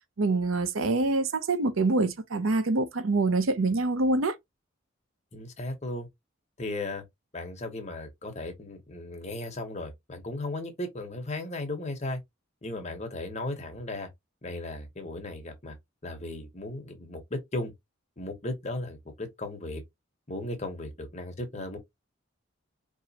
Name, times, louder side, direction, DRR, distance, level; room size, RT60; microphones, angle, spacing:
voice 1, 0.2-4.3, right 2 dB, 85° right, 0.7 m, -25 dB
voice 2, 5.3-6.1 6.6-7.0 7.3-12.2 12.6-14.1 14.4-15.8 16.0-17.7 18.2-19.8 20.3-21.8, left 2 dB, 35° left, 1.2 m, -36 dB
4.5 x 3.1 x 2.9 m
head